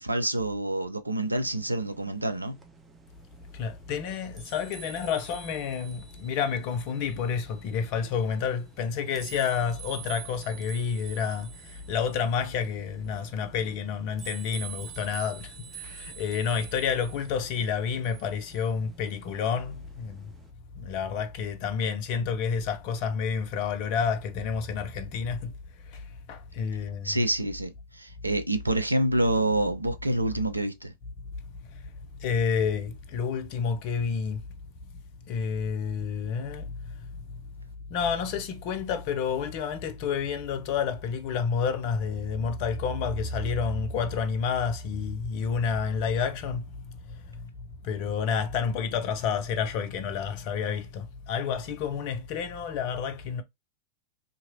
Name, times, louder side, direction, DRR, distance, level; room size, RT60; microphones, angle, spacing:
voice 1, 0.0-2.6 27.0-30.9, right 1 dB, 85° right, 0.4 m, -27 dB
sound 1, 1.2-20.5, right 8 dB, 15° right, 0.6 m, -48 dB
voice 2, 3.5-20.3 20.8-25.5 25.9-26.0 26.3-27.2 31.7-31.8 32.1-34.4 35.3-36.7 37.9-47.5 47.8-53.4, left 6 dB, 45° left, 0.5 m, -29 dB
2.9 x 2.5 x 2.6 m
figure-of-eight pair, 90°, 0 cm